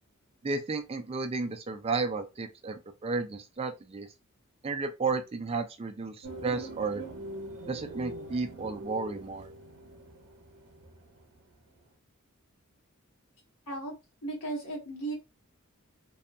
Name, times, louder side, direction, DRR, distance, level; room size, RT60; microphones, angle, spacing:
voice 1, 0.4-4.1 4.6-7.0 7.7-9.5, right 4 dB, 25° right, 0.3 m, -33 dB
sound 1, 6.2-11.6 11.8-11.9, right 2 dB, 80° right, 0.8 m, -43 dB
voice 2, 14.2-15.1, right 2 dB, 90° left, 1.1 m, -35 dB
2.7 x 2.2 x 2.5 m
head